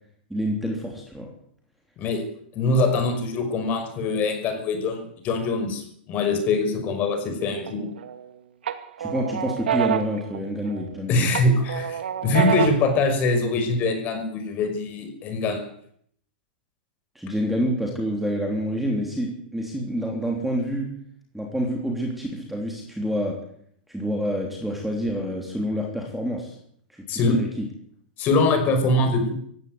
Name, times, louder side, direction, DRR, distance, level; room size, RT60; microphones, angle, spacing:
voice 1, 0.3-1.3 9.0-11.4 17.1-21.0 21.3-23.5 23.9-26.6 26.9-27.7, equal, ahead, 1 dB, 3.3 m, -28 dB
voice 2, 2.5-7.9 11.1-15.7 27.1-27.4 28.2-29.4, left 2 dB, 30° left, 6 dB, 5.8 m, -23 dB
sound 1, 7.7-8.2 8.7-10.9 11.3-12.9, right 9 dB, 85° right, 2.3 m, -27 dB
17.5 x 16.0 x 9.6 m, 0.66 s
supercardioid pair, 155°, 6 cm